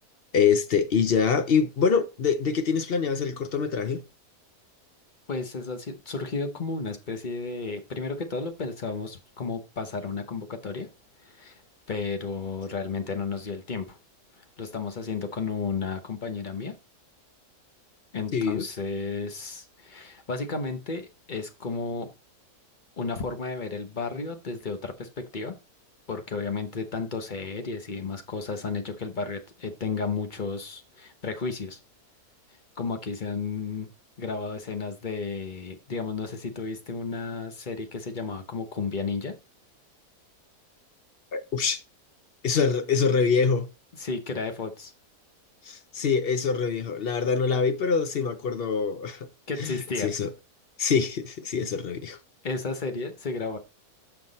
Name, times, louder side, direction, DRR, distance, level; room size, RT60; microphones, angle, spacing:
voice 1, 0.3-4.0 18.3-18.7 41.3-41.8 42.4-43.7 45.6-49.3 49.6-50.3 50.8-52.2, left 6 dB, 55° left, 0.7 m, -25 dB
voice 2, 5.3-10.9 11.2-11.6 11.9-14.0 14.6-16.7 18.1-22.1 23.0-25.5 26.1-31.8 32.8-33.9 34.2-39.3 44.0-44.9 49.5-50.1 52.4-53.6, left 4 dB, 35° left, 1.1 m, -33 dB
6.9 x 5.9 x 4.1 m
omnidirectional pair, 1.6 m